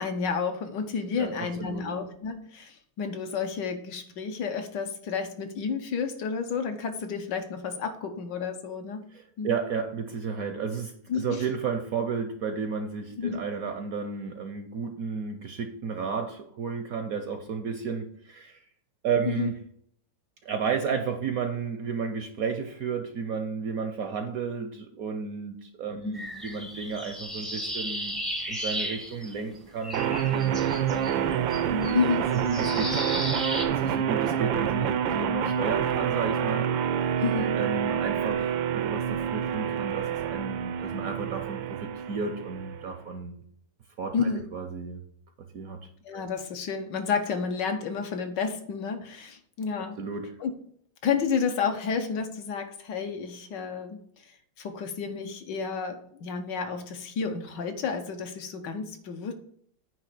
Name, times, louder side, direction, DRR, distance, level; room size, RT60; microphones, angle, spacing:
voice 1, 0.0-9.0 9.4-9.5 11.1-11.4 13.2-13.4 19.2-19.5 26.0-26.2 31.9-32.2 37.2-37.6 44.1-44.5 46.0-50.0 50.4-50.5 51.0-54.3 54.6-59.3, left 6 dB, 70° left, 6 dB, 1.5 m, -31 dB
voice 2, 1.2-1.9 9.1-18.6 19.0-19.6 20.4-28.2 28.5-32.0 32.3-33.0 33.7-36.7 37.5-43.4 44.0-45.0 45.5-45.9 46.1-46.2 50.0-50.4, right 5 dB, 65° right, 6 dB, 0.9 m, -33 dB
sound 1, 26.1-29.6 29.8-33.7, equal, ahead, 0.6 m, -35 dB
sound 2, 29.9-42.9, right 8 dB, 80° right, 1.4 m, -27 dB
9.2 x 3.3 x 6.6 m, 0.65 s
omnidirectional pair, 2.1 m